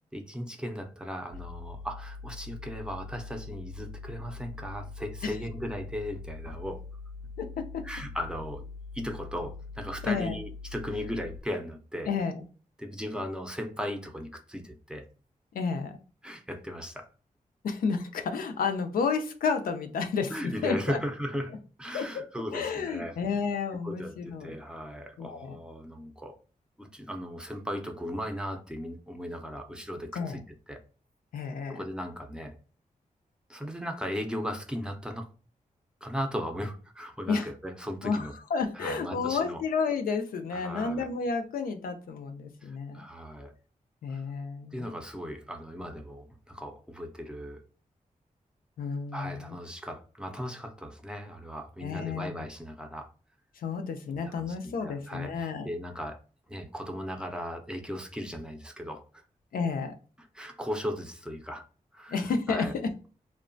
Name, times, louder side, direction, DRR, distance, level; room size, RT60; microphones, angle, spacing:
voice 1, 0.1-6.8 7.8-8.6 8.9-12.1 12.8-15.1 16.2-17.1 20.3-23.2 23.8-26.4 26.8-30.4 30.7-30.8 31.7-32.6 33.5-35.3 36.0-38.3 38.7-39.6 40.5-41.1 42.6-43.5 44.1-44.2 44.7-47.6 49.1-53.1 54.2-56.2 56.5-59.2 60.3-61.7 61.9-62.7, equal, 5° right, 0.5 m, -37 dB
sound 1, 1.3-11.4, left 4 dB, 55° right, 0.5 m, -43 dB
voice 2, 7.4-7.9 10.0-10.4 12.1-12.4 15.5-16.0 17.6-21.0 21.9-22.2 22.5-24.6 25.2-25.6 30.2-30.4 31.3-31.8 37.3-37.5 38.0-43.0 44.0-44.9 48.8-49.6 51.8-52.4 53.6-55.7 59.5-59.9 62.1-62.9, left 5 dB, 85° left, 0.4 m, -31 dB
2.9 x 2.1 x 2.5 m
cardioid pair, 75°, 14 cm